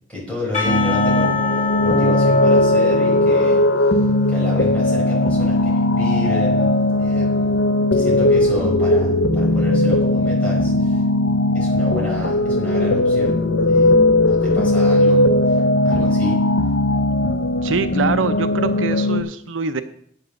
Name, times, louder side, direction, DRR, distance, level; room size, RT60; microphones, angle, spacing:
voice 1, 0.1-4.0 4.3-11.0 11.5-16.5, left 1 dB, 5° left, -5 dB, 4.9 m, -30 dB
Percussion / Church bell, 0.5-5.8, left 5 dB, 40° left, 3.1 m, -28 dB
sound 1, 0.6-19.2, left 1 dB, 70° left, 0.7 m, -18 dB
voice 2, 17.6-19.8, right 5 dB, 80° right, 11 dB, 0.6 m, -24 dB
9.0 x 7.5 x 6.4 m, 0.64 s
head